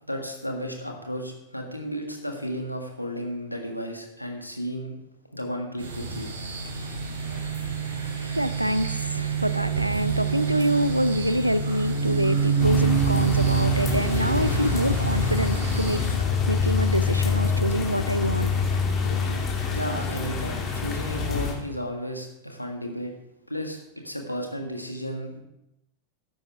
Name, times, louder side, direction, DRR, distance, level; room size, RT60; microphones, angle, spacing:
voice 1, 0.0-4.9 5.3-6.3 19.7-23.1 23.5-25.4, equal, 90° left, 2 dB, 1.7 m, -33 dB
sound 1, 5.8-16.1, right 6 dB, 65° right, 3.0 m, -27 dB
voice 2, 8.2-19.4, equal, 90° right, 16 dB, 0.4 m, -26 dB
sound 2, 12.6-21.5, left 5 dB, 25° left, 2.2 m, -26 dB
13.5 x 10.5 x 3.5 m, 0.86 s
figure-of-eight pair, 90°, 0 cm